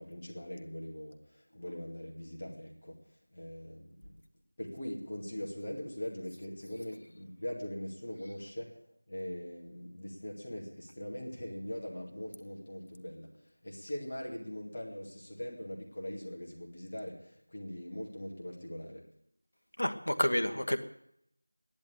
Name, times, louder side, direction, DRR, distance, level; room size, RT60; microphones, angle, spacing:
voice 1, 0.0-3.0 3.3-4.1 4.6-8.8 9.1-13.3 13.6-19.0, left 1 dB, 30° left, -1 dB, 2.3 m, -41 dB
voice 2, 19.8-20.8, equal, 65° left, 8 dB, 1.2 m, -29 dB
11.0 x 10.5 x 8.4 m, 0.74 s
figure-of-eight pair, 175°, 0 cm